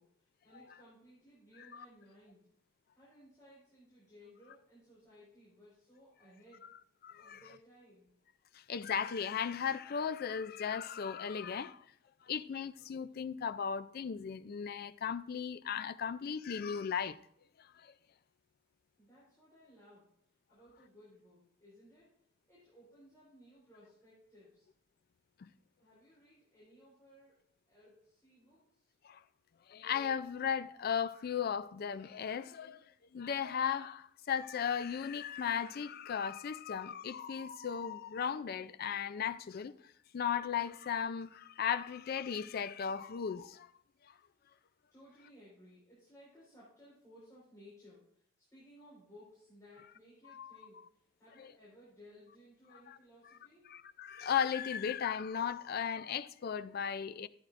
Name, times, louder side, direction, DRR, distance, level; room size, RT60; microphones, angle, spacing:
voice 1, 0.0-2.5 3.0-6.6 7.2-8.1 19.0-20.1 20.5-22.1 22.5-24.7 25.8-27.4 27.7-28.9 44.9-53.7, equal, 15° left, 4.4 m, -60 dB
voice 2, 7.0-7.4 8.5-11.8 12.3-17.2 17.6-17.9 25.4-25.5 29.0-29.2 29.7-32.8 33.1-43.7 44.1-44.2 50.3-50.5 51.4-51.5 52.9-53.0 53.7-57.3, left 7 dB, 50° left, 0.4 m, -36 dB
14.0 x 9.2 x 2.5 m
head